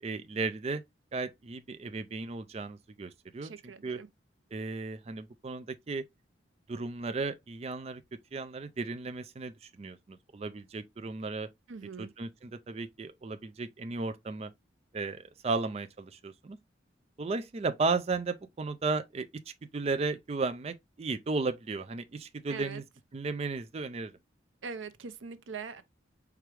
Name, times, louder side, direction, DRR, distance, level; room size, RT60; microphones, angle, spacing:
voice 1, 0.0-0.8 1.1-3.5 3.8-4.0 4.5-6.0 6.7-8.0 8.3-11.5 12.0-14.5 14.9-16.6 17.2-19.3 19.7-22.8 23.1-24.1, right 3 dB, 35° right, 0.4 m, -34 dB
voice 2, 3.4-4.1 11.7-12.1 22.5-22.8 24.6-25.8, right 5 dB, 90° right, 0.7 m, -42 dB
4.6 x 3.5 x 3.3 m
head